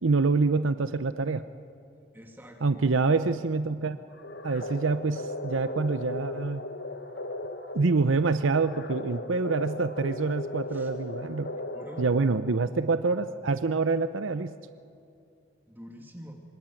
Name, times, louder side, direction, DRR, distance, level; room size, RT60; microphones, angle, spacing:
voice 1, 0.0-1.4 2.6-4.0 4.4-6.6 7.7-11.5 12.0-14.5, right 4 dB, 90° right, 11 dB, 0.7 m, -26 dB
voice 2, 2.1-3.0 10.7-10.9 11.7-12.1 15.7-16.4, equal, 10° right, 2 dB, 2.1 m, -46 dB
sound 1, 4.1-12.6, left 2 dB, 60° left, 1.5 m, -38 dB
26.0 x 25.0 x 9.0 m, 2.5 s
head